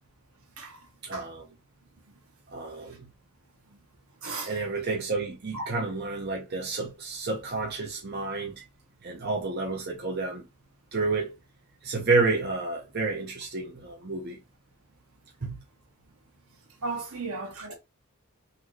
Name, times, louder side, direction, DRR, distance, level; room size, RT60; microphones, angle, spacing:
voice 1, 1.0-1.5 2.5-3.1 4.4-8.5 9.0-10.4 10.9-11.4 11.8-14.4 15.4-15.6, right 3 dB, 45° right, 0.8 m, -30 dB
voice 2, 4.2-4.5 5.5-5.7 16.8-17.8, right 3 dB, 75° right, 1.4 m, -35 dB
4.0 x 2.9 x 3.1 m
head